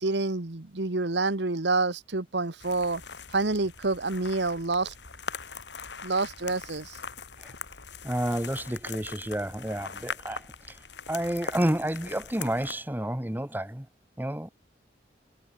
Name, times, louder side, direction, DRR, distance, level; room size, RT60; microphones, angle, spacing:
voice 1, 0.0-3.0 3.3-4.9 6.0-7.0, right 3 dB, 75° right, 1.4 m, -28 dB
sound 1, 2.6-12.7, left 5 dB, 75° left, 6.3 m, -41 dB
voice 2, 8.0-10.8 11.1-13.9 14.2-14.5, right 1 dB, 10° right, 1.2 m, -30 dB
head